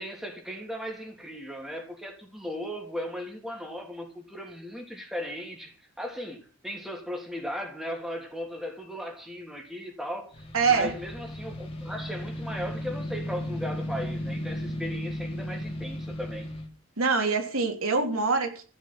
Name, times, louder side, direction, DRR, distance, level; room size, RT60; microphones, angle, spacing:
voice 1, 0.0-10.3 10.7-16.5, equal, ahead, 3.3 m, -37 dB
sound 1, 10.3-16.7, equal, 25° left, 2.7 m, -35 dB
voice 2, 10.5-10.9 17.0-18.6, right 4 dB, 80° right, 3.3 m, -24 dB
15.5 x 6.2 x 8.9 m
head